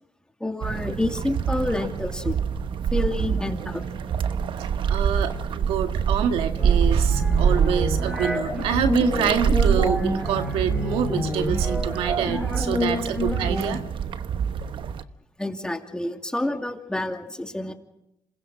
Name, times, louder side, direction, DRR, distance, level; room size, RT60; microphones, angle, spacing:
voice 1, 0.4-2.4 2.9-4.1 15.4-17.7, left 1 dB, 10° left, 4 dB, 2.5 m, -28 dB
sound 1, 0.6-15.0, right 7 dB, 65° right, 1.0 m, -25 dB
voice 2, 4.6-13.8, right 8 dB, 90° right, 7 dB, 1.7 m, -27 dB
sound 2, 6.6-13.7, left 1 dB, 5° right, 5.6 m, -29 dB
27.5 x 20.0 x 6.3 m, 0.88 s
cardioid pair, 70°, 9 cm